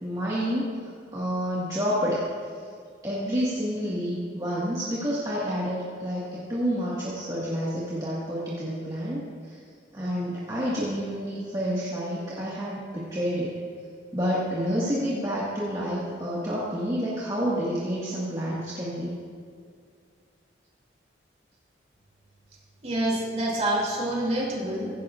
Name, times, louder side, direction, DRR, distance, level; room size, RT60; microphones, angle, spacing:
voice 1, 0.0-0.8 1.1-2.2 3.0-9.6 9.9-13.5 14.1-19.2, equal, 20° right, -8 dB, 1.8 m, -29 dB
voice 2, 22.8-24.9, right 1 dB, 35° right, -4 dB, 3.3 m, -27 dB
16.5 x 15.5 x 2.5 m, 2.2 s
head